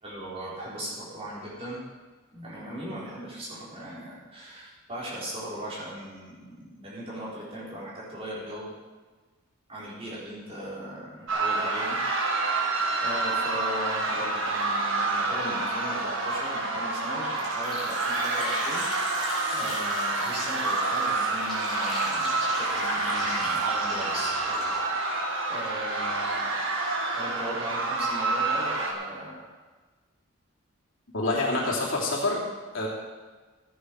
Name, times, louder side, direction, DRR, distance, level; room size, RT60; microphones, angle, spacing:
voice 1, 0.0-1.8 2.3-8.7 9.7-12.0 12.3-12.7 13.0-24.4 25.5-26.5 27.1-29.5, right 1 dB, 30° right, -7 dB, 4.4 m, -38 dB
sound 1, 11.3-28.9, right 3 dB, 75° right, 1.9 m, -28 dB
sound 2, 17.2-24.8, left 1 dB, ahead, 5.1 m, -38 dB
voice 2, 31.1-32.4 32.7-32.9, left 2 dB, 70° left, -3 dB, 3.1 m, -26 dB
15.0 x 9.4 x 4.8 m, 1.3 s
head